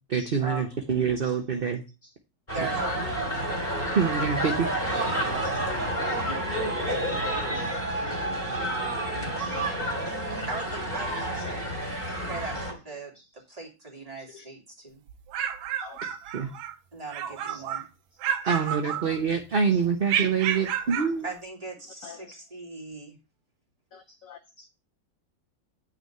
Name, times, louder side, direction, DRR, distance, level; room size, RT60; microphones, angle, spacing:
voice 1, 0.1-1.8 3.9-4.7 16.3-16.5 18.4-21.3, right 6 dB, 45° right, 0.7 m, -26 dB
sound 1, 2.5-12.7, right 1 dB, 30° left, 3.2 m, -29 dB
voice 2, 2.5-3.1 5.3-5.8 6.1-6.4 9.6-9.8 10.5-15.0 16.9-17.9 21.2-23.2, right 3 dB, 20° right, 2.7 m, -39 dB
voice 3, 5.2-5.6 7.1-7.8 9.4-9.6 14.3-14.4 15.8-16.0 17.5-17.6 22.0-22.4 23.9-24.7, left 6 dB, 70° left, 0.8 m, -47 dB
sound 2, 15.1-16.8 17.1-17.9 18.2-19.5 20.1-21.2, right 9 dB, 85° right, 1.5 m, -31 dB
9.3 x 4.1 x 6.6 m
omnidirectional pair, 2.1 m